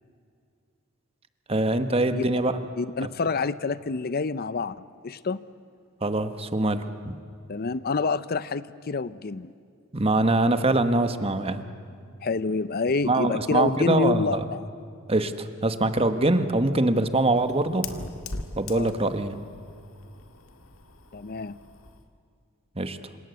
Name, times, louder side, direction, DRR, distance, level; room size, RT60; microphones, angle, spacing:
voice 1, 1.5-2.5 3.0-3.1 6.0-7.1 9.9-11.6 13.0-14.4 15.1-17.8 18.6-19.4 22.8-23.0, right 2 dB, 30° right, 9 dB, 1.3 m, -23 dB
voice 2, 2.8-5.4 7.5-9.5 12.2-14.6 18.7-18.9 21.1-21.6, left 4 dB, 45° left, 16 dB, 0.6 m, -28 dB
Fire, 15.9-22.1, left 3 dB, 75° left, 2.0 m, -42 dB
27.5 x 26.5 x 8.1 m, 2.3 s
head